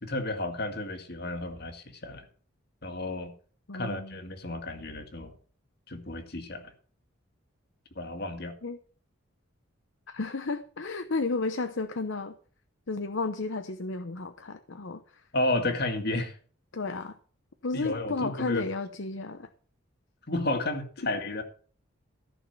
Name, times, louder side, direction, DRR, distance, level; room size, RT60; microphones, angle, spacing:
voice 1, 0.0-2.3 2.8-3.3 3.7-5.4 5.9-6.7 8.0-8.5 15.3-16.4 17.7-18.7 20.3-21.4, left 2 dB, 50° left, 6 dB, 2.2 m, -32 dB
voice 2, 3.7-4.2 8.6-8.8 10.1-12.4 12.9-15.2 16.7-17.2 17.6-19.5, left 3 dB, 65° left, 9 dB, 0.8 m, -32 dB
14.5 x 6.4 x 6.9 m, 0.42 s
head